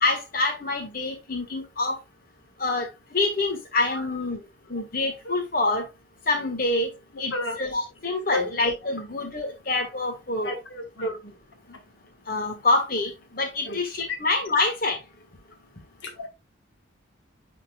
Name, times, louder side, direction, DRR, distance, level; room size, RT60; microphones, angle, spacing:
voice 1, 0.0-2.0 2.6-4.4 4.7-5.9 6.3-6.9 7.2-10.5 11.0-11.1 12.3-15.0, left 2 dB, 50° left, 1.5 m, -26 dB
voice 2, 7.1-7.6 8.3-8.5 10.4-11.2 13.6-13.8 16.0-16.3, left 1 dB, 70° left, 1.4 m, -32 dB
9.8 x 4.2 x 2.3 m
head